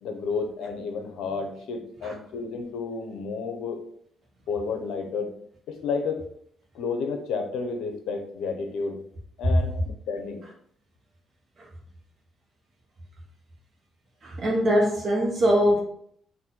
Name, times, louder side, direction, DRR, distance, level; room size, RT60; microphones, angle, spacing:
voice 1, 0.0-3.8 4.5-5.3 5.7-6.2 6.7-9.0 9.4-10.4, left 5 dB, 80° left, 5 dB, 0.7 m, -31 dB
voice 2, 14.2-15.8, equal, 45° right, -3 dB, 1.0 m, -22 dB
4.1 x 2.6 x 3.8 m, 0.66 s
cardioid pair, 90°, 0 cm